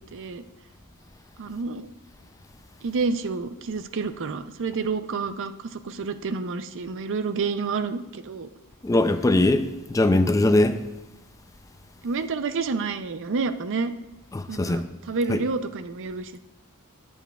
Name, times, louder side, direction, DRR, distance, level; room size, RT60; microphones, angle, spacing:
voice 1, 0.1-0.4 1.4-1.9 2.8-8.5 12.0-13.9 14.5-16.4, right 4 dB, 60° right, 0.5 m, -29 dB
voice 2, 8.8-10.8 14.3-14.9 15.3-15.4, left 2 dB, 15° left, 0.4 m, -21 dB
19.0 x 7.1 x 2.3 m
head